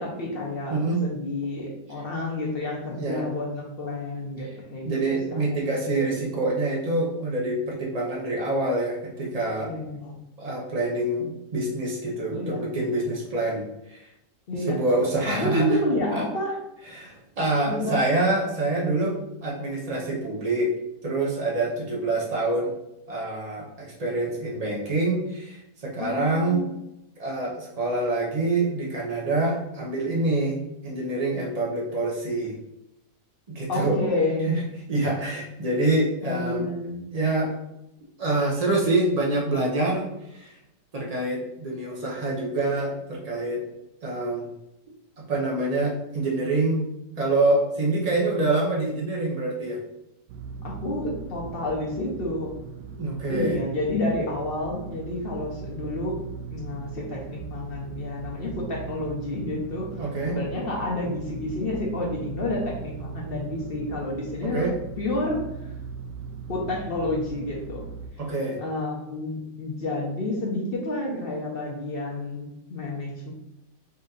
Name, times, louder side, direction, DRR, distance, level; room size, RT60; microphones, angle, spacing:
voice 1, 0.0-5.4 9.6-10.2 12.3-12.7 14.5-14.8 15.3-16.6 17.7-18.0 26.0-26.7 33.7-34.5 36.2-37.1 50.6-52.5 53.3-60.0 60.3-64.7 65.0-65.7 66.5-67.9 68.6-73.3, left 2 dB, 55° left, -2 dB, 0.7 m, -30 dB
voice 2, 2.9-3.2 4.8-9.7 10.4-14.0 14.7-15.8 16.1-16.2 16.9-20.7 21.0-22.7 23.1-26.7 27.2-30.6 30.8-32.5 33.5-34.0 34.5-34.6 34.9-36.7 37.1-37.5 38.2-40.6 40.9-43.6 44.0-44.5 45.2-49.8 53.0-53.6 60.0-60.3 64.4-64.7 68.2-68.6, right 2 dB, 90° right, -3 dB, 0.3 m, -26 dB
sound 1, 50.3-68.1, right 6 dB, 70° right, 1.0 m, -39 dB
4.2 x 2.7 x 3.8 m, 0.86 s
omnidirectional pair, 1.8 m